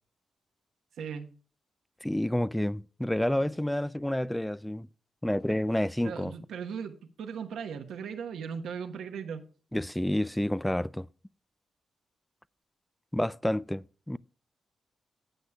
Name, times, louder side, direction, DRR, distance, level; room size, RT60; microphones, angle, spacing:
voice 1, 1.0-1.3 6.0-9.4, right 6 dB, 90° right, 1.1 m, -38 dB
voice 2, 2.0-4.9 5.2-6.3 9.7-11.1 13.1-14.2, left 1 dB, 5° left, 0.3 m, -29 dB
14.5 x 8.1 x 2.3 m
cardioid pair, 70°, 0 cm